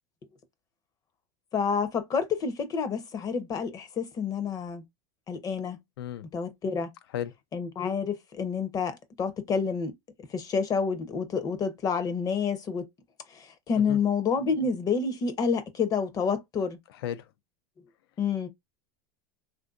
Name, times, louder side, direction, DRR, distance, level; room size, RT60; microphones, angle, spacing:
voice 1, 1.5-4.8 5.3-5.8 6.3-6.9 7.5-9.9 10.3-12.9 13.3-16.8 18.2-18.5, left 5 dB, 30° left, 0.6 m, -28 dB
voice 2, 6.0-6.2 7.1-7.3 13.8-14.0 17.0-17.3, left 10 dB, 80° left, 0.5 m, -34 dB
3.4 x 2.5 x 2.4 m
supercardioid pair, 120°, 12 cm